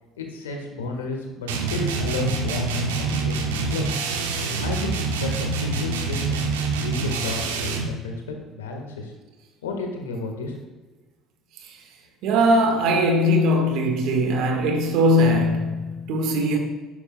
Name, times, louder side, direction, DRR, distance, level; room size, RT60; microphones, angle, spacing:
voice 1, 0.2-3.9 4.6-6.4 6.8-9.1 9.6-10.5, left 2 dB, 85° left, 1.4 m, -32 dB
sound 1, 1.5-8.0, right 3 dB, 80° right, 1.0 m, -26 dB
voice 2, 12.2-16.6, equal, 65° right, 1.5 m, -20 dB
11.5 x 8.5 x 2.2 m
hypercardioid pair, 65°, 0 cm